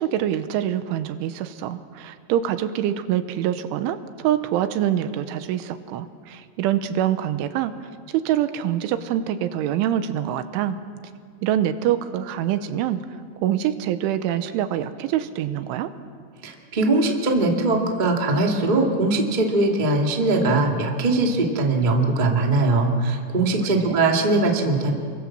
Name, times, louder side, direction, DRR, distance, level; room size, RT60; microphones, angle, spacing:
voice 1, 0.0-7.7 8.1-10.8 11.4-13.0 13.4-15.9 23.7-24.0, right 11 dB, 85° right, 10 dB, 3.4 m, -25 dB
voice 2, 16.4-24.9, right 2 dB, 20° right, 0 dB, 1.3 m, -21 dB
29.5 x 24.0 x 7.5 m, 2.1 s
omnidirectional pair, 5.6 m